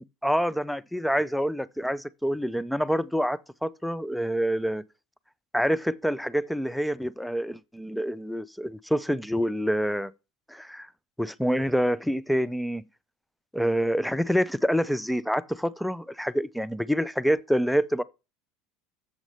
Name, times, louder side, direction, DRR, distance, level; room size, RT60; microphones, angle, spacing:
voice 1, 0.0-4.8 5.5-10.1 10.5-10.9 11.2-12.8 13.5-18.0, equal, ahead, 0.5 m, -27 dB
7.5 x 6.2 x 6.6 m
supercardioid pair, 110°, 0 cm